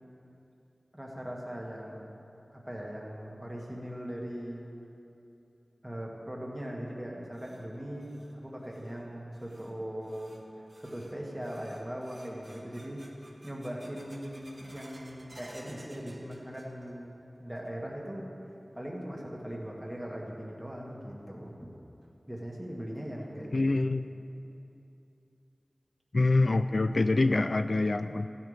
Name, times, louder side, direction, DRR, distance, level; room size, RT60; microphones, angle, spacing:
voice 1, 0.9-2.1 2.5-4.7 5.8-10.3 10.8-13.0 13.4-18.3 18.7-21.5 22.3-23.6, equal, 10° right, -3 dB, 2.1 m, -40 dB
sound 1, 7.3-17.1 17.3-18.0 18.3-18.4 19.2-19.3 20.9-21.0 21.5-21.6 22.0-22.1 22.6-22.7 23.2-23.6, right 1 dB, 40° right, 1.5 m, -56 dB
voice 2, 23.5-24.0 26.1-28.3, left 2 dB, 65° left, 10 dB, 0.3 m, -25 dB
15.0 x 11.5 x 3.5 m, 2.8 s
wide cardioid pair, 60°, 0 cm